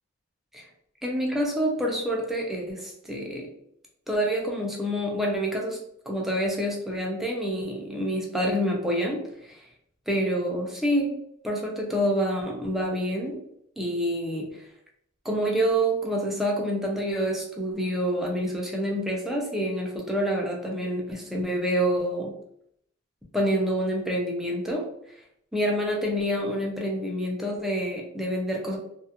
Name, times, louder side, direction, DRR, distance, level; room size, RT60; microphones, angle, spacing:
voice 1, 1.0-3.5 4.1-9.6 10.1-11.1 11.4-13.4 13.8-14.7 15.2-22.3 23.3-24.9 25.5-28.8, equal, ahead, -2 dB, 0.5 m, -27 dB
2.3 x 2.1 x 2.7 m, 0.73 s
head